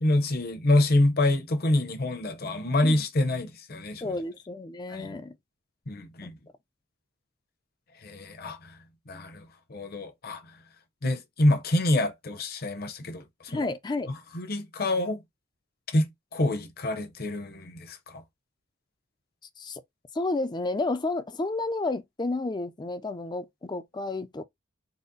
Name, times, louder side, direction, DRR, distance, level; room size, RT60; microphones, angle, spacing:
voice 1, 0.0-4.1 4.9-5.2 5.9-6.4 8.0-8.8 9.1-10.4 11.0-13.2 13.5-13.7 14.1-15.2 15.9-18.2, left 1 dB, 50° left, 0.8 m, -27 dB
voice 2, 4.0-5.4 6.2-6.3 13.5-14.1 19.6-19.8 20.1-24.4, left 2 dB, 20° left, 0.4 m, -31 dB
4.0 x 2.1 x 3.8 m
head